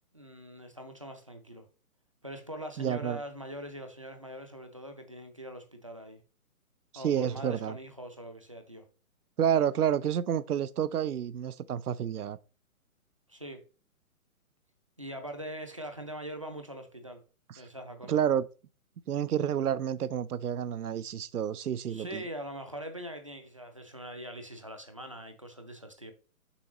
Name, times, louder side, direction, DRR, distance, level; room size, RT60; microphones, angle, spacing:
voice 1, 0.1-1.7 2.2-6.2 6.9-8.9 13.3-13.6 15.0-17.2 17.6-18.2 21.9-26.1, equal, 25° right, 0.5 m, -42 dB
voice 2, 2.8-3.2 6.9-7.7 9.4-12.4 18.1-18.4 19.1-22.2, right 9 dB, 85° right, 0.7 m, -29 dB
7.0 x 5.7 x 3.0 m
hypercardioid pair, 165°, 44 cm